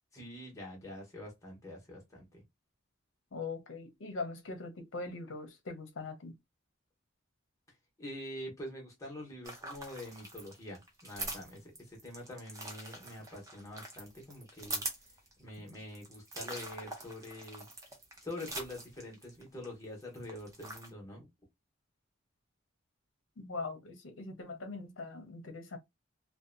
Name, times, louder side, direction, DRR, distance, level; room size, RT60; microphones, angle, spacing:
voice 1, 0.1-2.4 8.0-14.8 15.4-17.7 18.2-21.3, left 1 dB, 15° left, 0.9 m, -45 dB
voice 2, 3.3-6.3 23.4-25.8, left 3 dB, 70° left, 0.6 m, -41 dB
sound 1, 9.4-19.7 20.0-20.9, right 2 dB, 15° right, 0.5 m, -44 dB
2.6 x 2.1 x 2.5 m
head